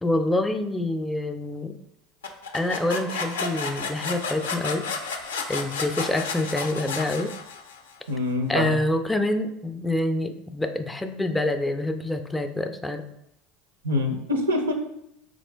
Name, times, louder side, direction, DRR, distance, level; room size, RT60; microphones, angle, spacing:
voice 1, 0.0-1.8 2.5-4.9 5.5-7.3 8.5-13.0, left 1 dB, 10° left, 7 dB, 0.4 m, -26 dB
sound 1, 2.2-7.9, left 4 dB, 85° left, 0.4 m, -32 dB
voice 2, 8.1-8.7 13.8-14.7, left 1 dB, 90° right, 5 dB, 0.5 m, -25 dB
3.6 x 2.5 x 3.3 m, 0.78 s
hypercardioid pair, 80°, 0 cm